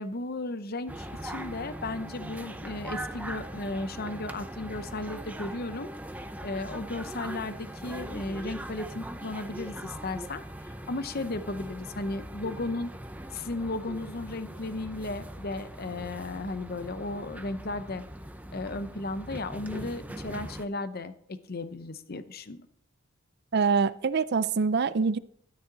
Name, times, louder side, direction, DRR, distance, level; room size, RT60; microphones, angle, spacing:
voice 1, 0.0-5.9 6.4-12.9 13.3-18.1 18.5-22.7, left 2 dB, 45° left, 0.7 m, -35 dB
sound 1, 0.9-20.6, right 1 dB, 5° right, 0.6 m, -41 dB
voice 2, 23.5-25.2, right 5 dB, 50° right, 0.4 m, -25 dB
12.5 x 9.3 x 3.9 m
head